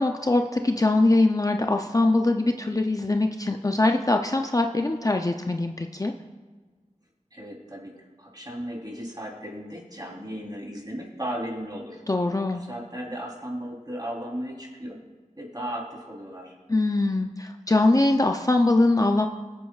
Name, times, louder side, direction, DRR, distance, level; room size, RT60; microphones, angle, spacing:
voice 1, 0.0-6.1 12.1-12.6 16.7-19.3, left 2 dB, 25° left, 4 dB, 0.5 m, -22 dB
voice 2, 7.3-7.9 8.2-12.0 12.7-15.0 15.4-16.5, equal, 30° right, -3 dB, 3.5 m, -35 dB
21.5 x 8.5 x 2.4 m, 1.4 s
wide cardioid pair, 55°, 13 cm